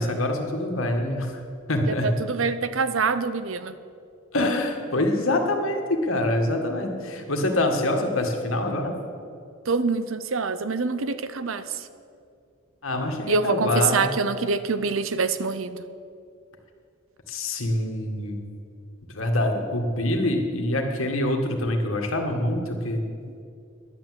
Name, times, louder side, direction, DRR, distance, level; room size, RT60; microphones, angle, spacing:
voice 1, 0.0-1.4 1.7-2.1 4.3-9.0 12.8-14.1 17.3-18.4 19.1-23.0, left 1 dB, 75° left, 3 dB, 1.8 m, -25 dB
voice 2, 1.9-3.7 9.7-11.9 13.3-15.8, right 4 dB, 70° right, 12 dB, 0.7 m, -25 dB
11.0 x 9.6 x 7.8 m, 2.4 s
head